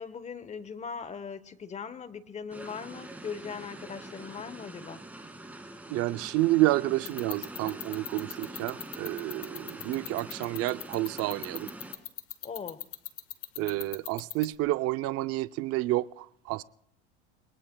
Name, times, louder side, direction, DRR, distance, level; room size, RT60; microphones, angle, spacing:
voice 1, 0.0-5.0 12.4-12.9, left 6 dB, 20° left, 0.9 m, -40 dB
sound 1, 2.5-11.9, right 1 dB, 5° right, 2.1 m, -44 dB
voice 2, 5.9-11.7 13.6-16.6, right 17 dB, 45° right, 0.6 m, -29 dB
sound 2, 7.1-14.5, left 14 dB, 45° left, 1.1 m, -38 dB
29.0 x 20.0 x 2.2 m
supercardioid pair, 115°, 33 cm